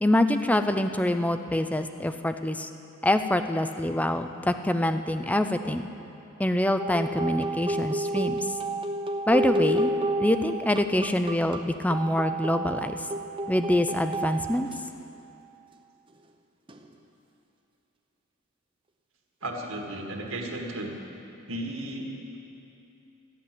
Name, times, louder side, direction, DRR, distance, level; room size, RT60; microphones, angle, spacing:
voice 1, 0.0-2.7 3.0-5.9 6.4-8.5 9.3-9.9 10.2-13.0 13.5-14.7, left 1 dB, 5° left, 8 dB, 0.5 m, -25 dB
sound 1, 6.8-14.8 16.7-16.9, right 1 dB, 25° right, 0.8 m, -30 dB
voice 2, 19.4-20.9 21.5-22.4, right 1 dB, 75° right, 0 dB, 2.0 m, -34 dB
14.0 x 10.5 x 7.6 m, 2.8 s
head